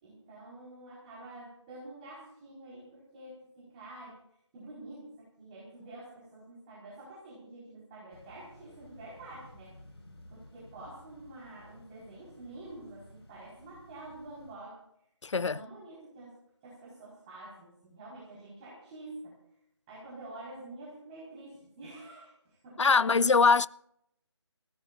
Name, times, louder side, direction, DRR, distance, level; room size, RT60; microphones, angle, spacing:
voice 1, 0.0-4.2 4.5-9.7 10.3-14.8 15.5-16.3 16.6-19.4 19.9-23.4, right 2 dB, 15° right, 4.4 m, -48 dB
sound 1, 8.1-14.6, left 1 dB, 60° left, 5.1 m, -55 dB
voice 2, 15.2-15.6 22.8-23.7, left 4 dB, 80° left, 0.5 m, -23 dB
26.0 x 16.0 x 2.5 m
figure-of-eight pair, 160°, 15 cm